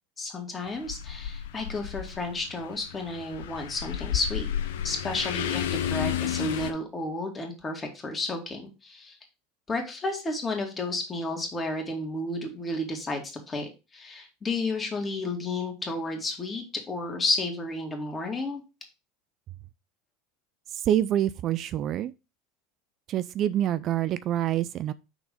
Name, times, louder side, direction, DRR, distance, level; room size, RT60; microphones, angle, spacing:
voice 1, 0.2-4.5 4.8-9.2 9.7-18.6, left 2 dB, 25° left, 2.3 m, -32 dB
sound 1, 0.7-6.7, left 9 dB, 75° left, 0.7 m, -32 dB
voice 2, 20.7-22.1 23.1-24.9, right 11 dB, 45° right, 0.3 m, -26 dB
6.0 x 4.0 x 5.3 m
hypercardioid pair, 80°, 0 cm